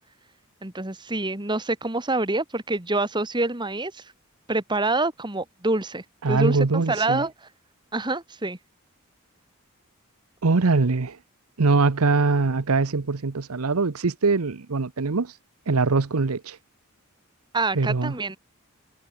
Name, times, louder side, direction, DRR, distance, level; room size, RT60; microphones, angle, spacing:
voice 1, 0.6-4.0 4.5-7.3 7.9-8.6 17.5-18.4, right 2 dB, 20° right, 1.7 m, -26 dB
voice 2, 6.2-7.2 10.4-11.2 11.6-15.3 15.7-16.6 17.7-18.1, right 4 dB, 80° right, 0.8 m, -22 dB
head